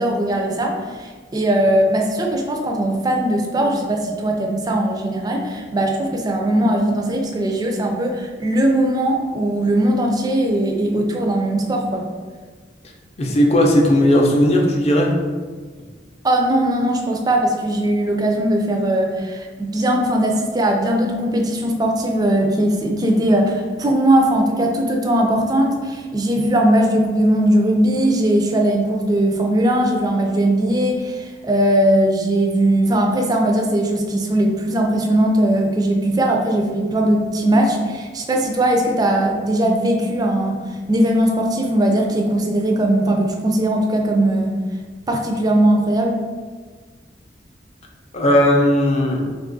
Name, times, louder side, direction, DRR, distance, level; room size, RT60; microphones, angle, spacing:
voice 1, 0.0-12.1 16.2-40.6 40.9-44.6 45.1-46.2, right 1 dB, 20° right, 2 dB, 0.3 m, -19 dB
voice 2, 13.2-15.2 48.1-49.2, left 1 dB, 35° left, 0 dB, 0.5 m, -16 dB
2.8 x 2.3 x 3.8 m, 1.5 s
head